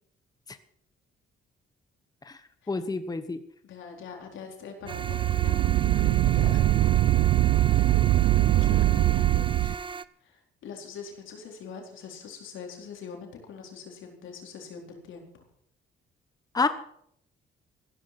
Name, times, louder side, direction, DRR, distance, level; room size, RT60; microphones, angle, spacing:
voice 1, 2.7-3.4 16.5-16.7, left 3 dB, 20° left, 10 dB, 1.1 m, -28 dB
voice 2, 3.6-7.1 7.5-9.8 10.2-15.5, left 6 dB, 80° left, 2 dB, 4.3 m, -44 dB
sound 1, 4.9-10.1, right 5 dB, 25° right, 0.6 m, -37 dB
sound 2, 4.9-9.7, right 15 dB, 80° right, 0.6 m, -22 dB
15.5 x 13.0 x 6.0 m, 0.70 s
cardioid pair, 90°, 20 cm